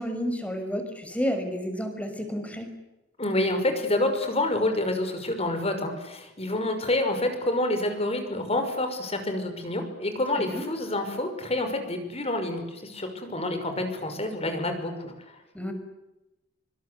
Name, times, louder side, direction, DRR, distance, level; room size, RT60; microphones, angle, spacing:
voice 1, 0.0-2.7 10.4-10.6 15.5-15.7, equal, 5° left, 6 dB, 5.9 m, -31 dB
voice 2, 3.2-15.1, left 1 dB, 35° left, 7 dB, 6.0 m, -28 dB
26.5 x 25.0 x 8.1 m, 0.97 s
head